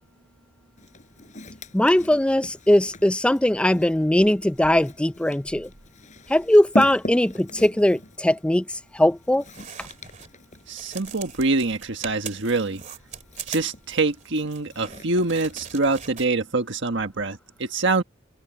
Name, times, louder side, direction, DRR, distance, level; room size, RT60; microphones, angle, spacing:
Walk footsteps, 0.8-15.8, left 1 dB, 40° left, 5.7 m, -39 dB
voice 1, 1.7-5.7 6.3-8.6 8.9-9.4, left 1 dB, 5° left, 0.4 m, -20 dB
sound 1, 9.4-10.3 10.7-16.3, right 7 dB, 40° right, 2.4 m, -41 dB
voice 2, 10.7-12.8 13.5-18.0, right 3 dB, 65° right, 1.5 m, -25 dB
open air
head